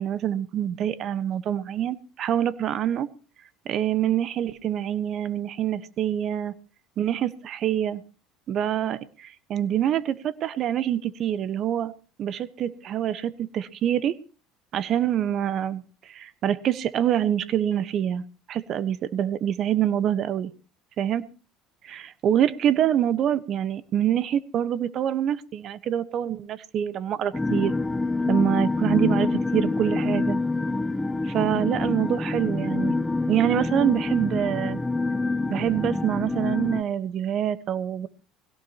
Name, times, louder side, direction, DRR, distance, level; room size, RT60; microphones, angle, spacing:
voice 1, 0.0-3.1 3.6-6.5 7.0-8.0 8.5-11.9 12.2-14.1 14.7-20.5 21.0-21.2 21.9-27.7 28.3-30.4 31.2-33.0 33.3-34.8 35.5-38.1, right 10 dB, 50° right, 16 dB, 1.1 m, -25 dB
sound 1, 27.3-36.8, left 3 dB, 10° left, 0.8 m, -26 dB
21.0 x 17.0 x 2.9 m, 0.36 s
hypercardioid pair, 85°, 0 cm